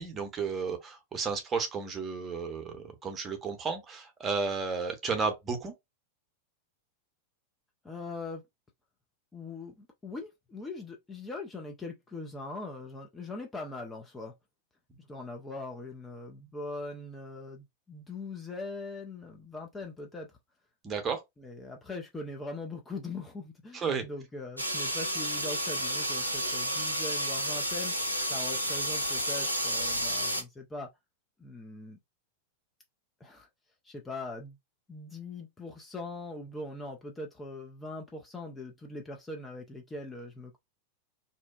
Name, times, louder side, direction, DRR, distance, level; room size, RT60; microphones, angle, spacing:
voice 1, 0.0-5.7 20.8-21.2 23.7-24.0, right 5 dB, 25° right, 0.8 m, -33 dB
voice 2, 7.8-8.4 9.3-14.3 15.0-20.3 21.4-28.0 28.3-30.9 31.4-32.0 33.2-33.5 33.8-34.6 34.9-40.6, left 2 dB, 15° left, 0.5 m, -41 dB
sound 1, 24.6-30.4, equal, 90° right, 0.5 m, -31 dB
2.6 x 2.2 x 2.3 m
figure-of-eight pair, 90°, 0 cm